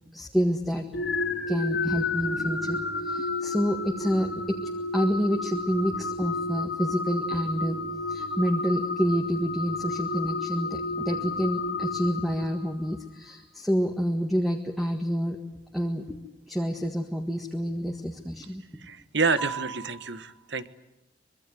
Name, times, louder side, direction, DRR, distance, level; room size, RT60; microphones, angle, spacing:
voice 1, 0.1-0.8 1.5-4.6 4.9-7.8 8.1-15.4 15.7-18.6 19.4-20.4, equal, ahead, 1 dB, 1.7 m, -28 dB
sound 1, 0.9-12.9, left 3 dB, 70° left, 3.4 m, -31 dB
voice 2, 18.8-20.7, right 4 dB, 75° right, 13 dB, 1.4 m, -28 dB
25.0 x 22.5 x 9.3 m, 0.89 s
head